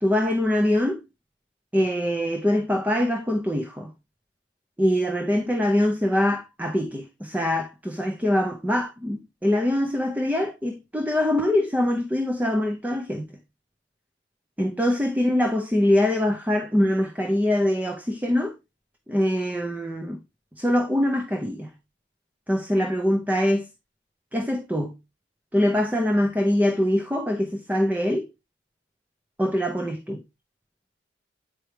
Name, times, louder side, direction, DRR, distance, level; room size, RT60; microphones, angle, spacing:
voice 1, 0.0-1.0 1.7-3.9 4.8-13.3 14.6-18.5 19.1-20.2 20.6-21.7 22.5-23.7 24.3-25.0 25.5-28.3 29.4-30.2, left 1 dB, 10° right, 0.6 m, -23 dB
8.9 x 4.5 x 3.1 m
head